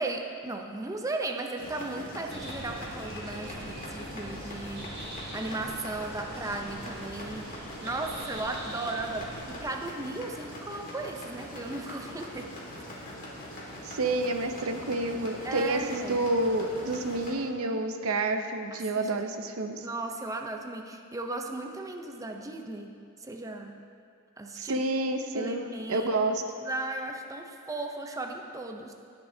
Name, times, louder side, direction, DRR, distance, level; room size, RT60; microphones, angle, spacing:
voice 1, 0.0-12.5 15.4-16.2 19.8-22.9 23.2-23.8 24.4-24.8 25.3-26.1 26.6-28.9, right 2 dB, 15° right, 3 dB, 0.6 m, -36 dB
sound 1, 1.6-17.3, left 1 dB, 40° left, 1.9 m, -42 dB
sound 2, 2.3-9.7, right 1 dB, 45° right, 2.2 m, -43 dB
voice 2, 13.8-19.9 24.5-26.4, right 2 dB, 70° right, 7 dB, 0.7 m, -29 dB
19.0 x 6.8 x 2.7 m, 2.3 s
head